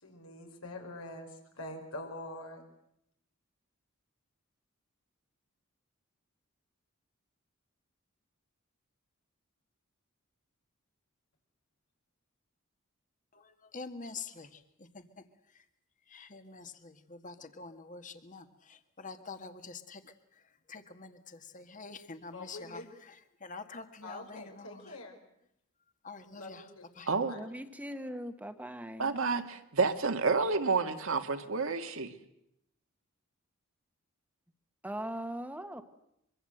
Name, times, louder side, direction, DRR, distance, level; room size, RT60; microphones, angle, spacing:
voice 1, 0.0-1.3 1.6-2.6 22.3-22.8 24.0-25.2 26.3-27.5, left 2 dB, 85° left, 3 dB, 5.4 m, -45 dB
voice 2, 13.3-15.0 16.1-20.0 20.7-23.1 23.4-25.0 26.0-26.7 27.0-27.1, left 4 dB, 40° left, 8 dB, 1.7 m, -46 dB
voice 3, 27.3-29.1 34.8-35.8, equal, 5° right, 8 dB, 1.3 m, -40 dB
voice 4, 29.0-32.1, right 4 dB, 70° right, 6 dB, 1.8 m, -29 dB
24.5 x 24.0 x 7.9 m, 0.77 s
head